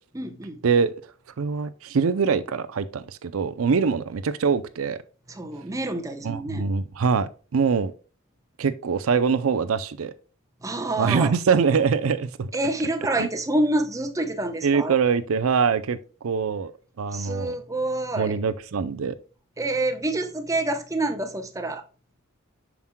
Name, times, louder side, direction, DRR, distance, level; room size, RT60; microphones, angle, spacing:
voice 1, 0.1-0.6 5.3-6.7 10.6-11.3 12.5-15.0 17.1-18.4 19.6-21.8, right 2 dB, 15° right, 0.8 m, -27 dB
voice 2, 1.4-5.0 6.2-7.9 8.6-10.1 11.0-12.5 13.2-13.3 14.6-16.0 16.2-16.7 17.0-17.5 18.2-19.2, right 5 dB, 85° right, 0.5 m, -23 dB
7.2 x 6.0 x 2.2 m
head